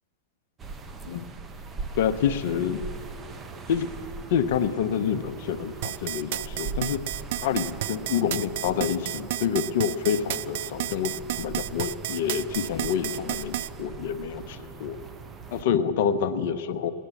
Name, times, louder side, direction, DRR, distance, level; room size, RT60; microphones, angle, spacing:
sound 1, 0.6-15.6, right 4 dB, 25° right, 1.0 m, -40 dB
voice 1, 1.9-2.8 3.7-3.9 4.3-7.0 7.4-15.0 15.5-16.9, left 8 dB, 65° left, 11 dB, 0.8 m, -27 dB
sound 2, 5.8-13.7, right 15 dB, 65° right, 0.3 m, -31 dB
18.0 x 10.0 x 7.1 m, 2.4 s
hypercardioid pair, 110°, 0 cm